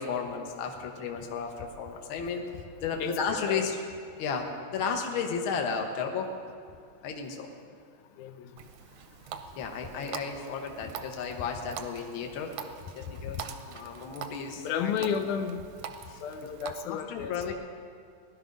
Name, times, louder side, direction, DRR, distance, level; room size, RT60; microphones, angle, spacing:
voice 1, 0.0-2.4 2.8-3.8 4.2-4.4 4.7-6.3 7.0-7.5 9.5-12.5 12.9-15.1 16.1-16.5 16.8-17.5, left 6 dB, 60° left, 2 dB, 1.5 m, -33 dB
voice 2, 8.2-8.5 13.3-13.4 14.6-15.6 16.2-17.5, left 7 dB, 85° left, 7 dB, 2.2 m, -32 dB
Water tap faucet, 8.6-16.7, right 7 dB, 75° right, 1.7 m, -44 dB
17.5 x 11.5 x 5.3 m, 2.3 s
omnidirectional pair, 3.4 m